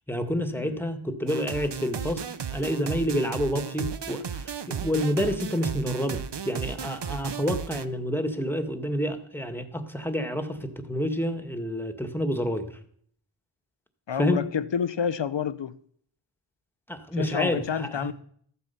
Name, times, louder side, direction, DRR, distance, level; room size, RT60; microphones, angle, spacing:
voice 1, 0.1-2.2 2.5-12.7 14.2-14.5 16.9-18.1, equal, 5° left, 2.0 m, -29 dB
sound 1, 1.3-7.8, right 7 dB, 55° right, 1.0 m, -34 dB
voice 2, 14.1-15.7 17.2-18.1, left 7 dB, 60° left, 0.9 m, -29 dB
14.0 x 8.3 x 7.1 m
cardioid pair, 45°, 49 cm